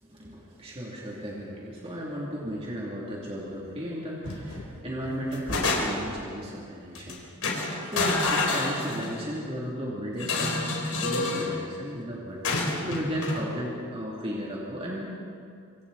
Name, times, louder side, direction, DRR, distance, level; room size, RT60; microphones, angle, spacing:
voice 1, 0.0-15.2, equal, 25° right, -5 dB, 2.9 m, -35 dB
assorted crashing, 4.2-4.7 5.1-6.2 6.9-7.1 7.4-9.3 10.2-11.5 12.4-13.4, left 3 dB, 80° left, 3.7 m, -28 dB
26.0 x 24.5 x 4.2 m, 2.4 s
head